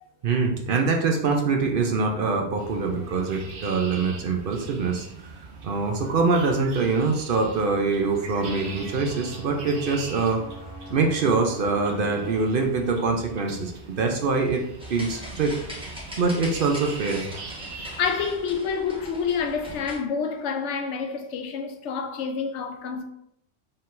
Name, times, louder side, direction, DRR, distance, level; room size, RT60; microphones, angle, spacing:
voice 1, 0.2-10.4 10.9-13.7 14.0-14.6 14.9-15.5 16.2-17.2, right 4 dB, 55° right, 0.7 m, -24 dB
sound 1, 2.6-18.3, right 4 dB, 75° right, 1.0 m, -42 dB
sound 2, 8.4-12.4, equal, 70° left, 1.3 m, -42 dB
sound 3, 14.8-20.0, equal, 5° right, 1.0 m, -40 dB
voice 2, 17.8-23.0, left 6 dB, 85° left, 0.9 m, -28 dB
4.3 x 3.8 x 2.5 m
omnidirectional pair, 1.2 m